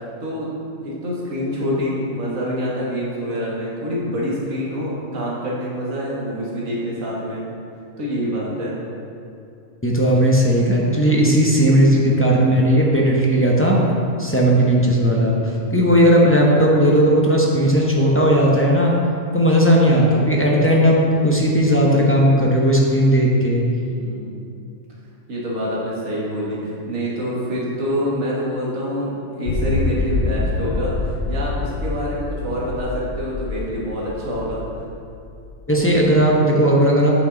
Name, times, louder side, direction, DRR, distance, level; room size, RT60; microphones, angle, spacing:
voice 1, 0.2-0.5 0.8-7.4 8.0-8.8 11.7-12.0 23.8-24.3 25.3-34.6, equal, 75° right, -6 dB, 1.9 m, -26 dB
voice 2, 9.8-13.8 14.2-18.9 19.3-23.6 35.7-37.1, equal, 15° left, -4 dB, 0.6 m, -16 dB
sound 1, 29.5-35.5, left 3 dB, 75° left, 1.0 m, -26 dB
7.9 x 5.7 x 3.8 m, 2.6 s
omnidirectional pair, 1.4 m